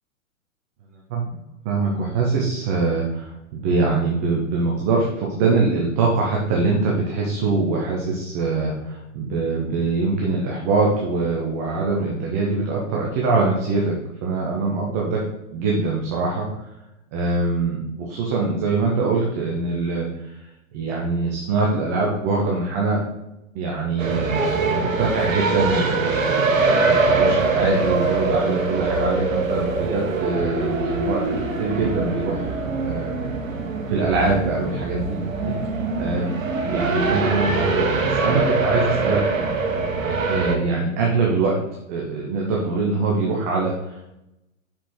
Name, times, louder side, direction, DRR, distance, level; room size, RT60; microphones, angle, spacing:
voice 1, 1.1-13.9 14.2-15.2 15.5-16.7 17.1-23.0 23.5-31.2 31.6-32.6 32.8-33.1 33.9-39.2 40.3-41.5 41.9-44.1, right 3 dB, 15° right, -2 dB, 0.3 m, -23 dB
sound 1, 24.0-40.6, right 3 dB, 75° right, 1.1 m, -23 dB
5.9 x 4.9 x 3.5 m, 0.89 s
figure-of-eight pair, 115°, 40 cm